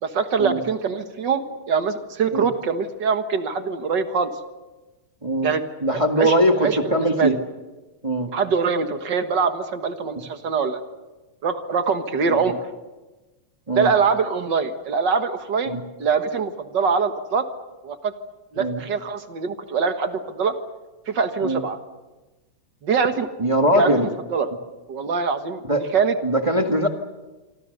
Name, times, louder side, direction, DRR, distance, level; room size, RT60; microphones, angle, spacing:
voice 1, 0.0-4.3 5.4-5.6 5.9-6.3 6.6-7.4 8.3-10.8 11.4-12.6 13.7-17.5 17.8-18.1 18.5-20.5 21.1-21.8 22.8-23.3 23.7-24.5 24.9-25.6 25.9-26.2, right 5 dB, 45° right, 8 dB, 1.7 m, -23 dB
voice 2, 5.2-5.5 5.8-7.3 8.0-8.3 12.3-12.4 13.7-13.9 15.7-15.8 18.5-18.8 21.4-21.6 23.4-24.1 25.7-25.8 26.2-26.9, equal, 15° right, 4 dB, 1.3 m, -21 dB
27.0 x 25.0 x 6.7 m, 1.2 s
omnidirectional pair, 3.3 m